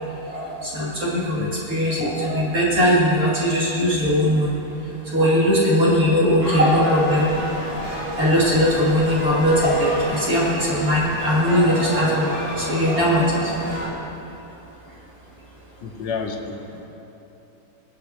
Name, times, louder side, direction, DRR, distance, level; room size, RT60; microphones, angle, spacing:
voice 1, 0.3-4.6 5.1-7.3 8.2-13.4, equal, 50° right, -7 dB, 3.3 m, -20 dB
sound 1, 6.4-13.9, equal, 30° right, 3.5 m, -30 dB
voice 2, 15.8-16.8, left 5 dB, 75° left, 3 dB, 1.6 m, -30 dB
24.5 x 8.1 x 3.0 m, 2.9 s
omnidirectional pair, 2.0 m